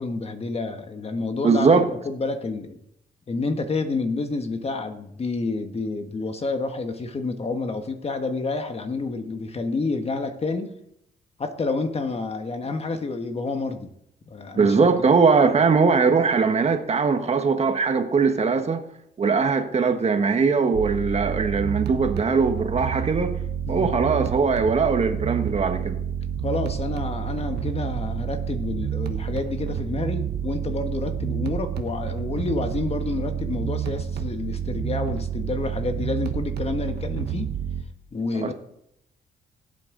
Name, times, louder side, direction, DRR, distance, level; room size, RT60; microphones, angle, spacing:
voice 1, 0.0-2.8 3.3-10.7 11.4-13.9 14.3-14.9 23.7-23.9 26.4-37.5 38.1-38.5, left 3 dB, 40° left, 6 dB, 1.5 m, -29 dB
voice 2, 1.4-1.9 14.5-18.8 19.2-23.3 23.7-26.0 38.3-38.5, right 5 dB, 40° right, 7 dB, 1.4 m, -20 dB
sound 1, 20.7-37.8, right 9 dB, 80° right, 1.3 m, -29 dB
18.5 x 8.2 x 3.9 m, 0.78 s
cardioid pair, 90°, 17 cm